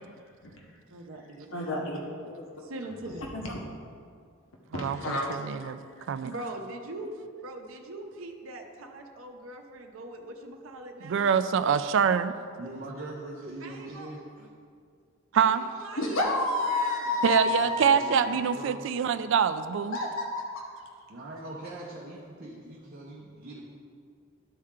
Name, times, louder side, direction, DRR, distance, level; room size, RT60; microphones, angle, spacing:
voice 1, 0.9-1.5 2.1-2.3 2.6-3.3 6.2-7.1 7.4-11.3 13.6-14.1 15.3-16.3 16.6-17.2, right 2 dB, 85° right, 3 dB, 0.8 m, -42 dB
voice 2, 1.5-2.0 2.4-2.5 3.3-3.6 4.7-6.1 16.0-18.5 19.9-20.3, left 2 dB, 80° left, -1 dB, 1.0 m, -30 dB
voice 3, 4.7-5.8 6.1-6.3 11.0-12.3 15.3-15.6 17.2-20.0, right 7 dB, 65° right, 12 dB, 0.4 m, -25 dB
voice 4, 12.6-14.5 17.4-18.9 21.1-23.6, right 1 dB, 50° right, -3 dB, 0.8 m, -42 dB
12.0 x 4.3 x 3.7 m, 2.1 s
head